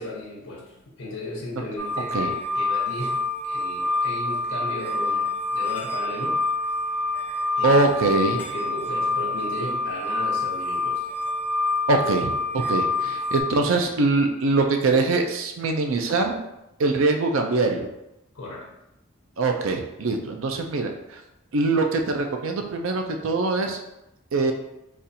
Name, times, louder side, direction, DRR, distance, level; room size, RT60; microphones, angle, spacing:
voice 1, 0.0-6.4 7.6-11.0 13.0-13.1 18.3-18.7, left 1 dB, 80° left, -4 dB, 0.8 m, -36 dB
sound 1, 1.8-13.4, left 2 dB, 10° left, 0.6 m, -27 dB
voice 2, 7.6-8.4 11.9-16.4 16.8-17.9 19.4-21.2 21.5-23.8 24.3-24.5, right 3 dB, 80° right, 4 dB, 0.5 m, -23 dB
4.1 x 2.4 x 2.7 m, 0.89 s
head